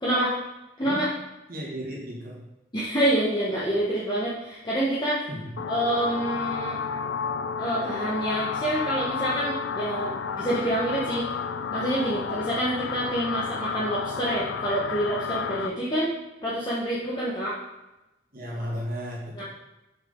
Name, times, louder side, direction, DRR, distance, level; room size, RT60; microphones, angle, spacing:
voice 1, 0.0-0.4 0.8-1.1 2.7-5.2 5.7-6.8 7.6-11.2 11.7-16.1 16.4-17.5 19.3-19.4, right 1 dB, 25° left, -7 dB, 1.1 m, -27 dB
voice 2, 1.5-2.4 5.3-5.5 18.3-19.4, equal, 50° right, -3 dB, 1.9 m, -34 dB
sound 1, 5.6-15.7, left 6 dB, 80° left, 0.4 m, -31 dB
6.2 x 6.0 x 3.7 m, 0.97 s
head